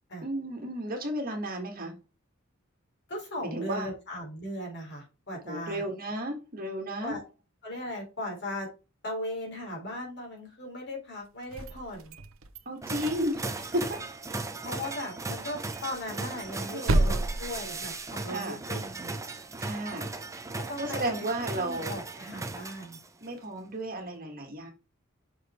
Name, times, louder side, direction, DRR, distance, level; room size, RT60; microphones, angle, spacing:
voice 1, 0.2-2.0 3.5-3.9 5.5-7.2 12.7-14.0 16.6-17.2 18.3-18.6 19.6-20.1 20.8-22.0 23.2-24.7, right 1 dB, 45° right, 3 dB, 1.9 m, -33 dB
voice 2, 3.1-5.8 7.0-7.2 7.6-8.7 9.0-12.1 14.6-19.1 20.7-21.3 21.5-23.0, left 1 dB, 55° left, 0 dB, 3.3 m, -38 dB
sound 1, 11.4-12.6 13.0-14.1 14.4-14.5 14.8-15.0 15.3-15.4 15.7-18.3, right 2 dB, 70° right, 0.9 m, -31 dB
sound 2, 12.8-23.2, right 3 dB, 15° right, 0.7 m, -37 dB
6.2 x 5.1 x 4.5 m, 0.30 s
head